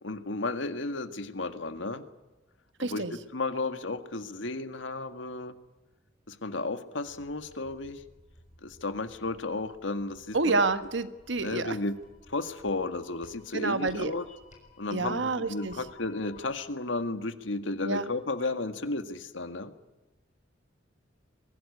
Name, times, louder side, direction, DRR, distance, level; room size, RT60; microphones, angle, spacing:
voice 1, 0.0-2.0 2.8-5.6 6.3-8.0 8.6-10.6 11.4-11.9 12.3-14.2 14.8-19.7, left 2 dB, 85° left, 10 dB, 1.8 m, -33 dB
voice 2, 2.8-3.1 10.3-11.8 13.5-14.1 14.9-15.8 17.8-18.1, right 3 dB, 75° right, 11 dB, 1.6 m, -28 dB
sound 1, 7.1-16.7, left 3 dB, 40° left, 6.5 m, -56 dB
23.5 x 17.0 x 9.8 m, 1.1 s
head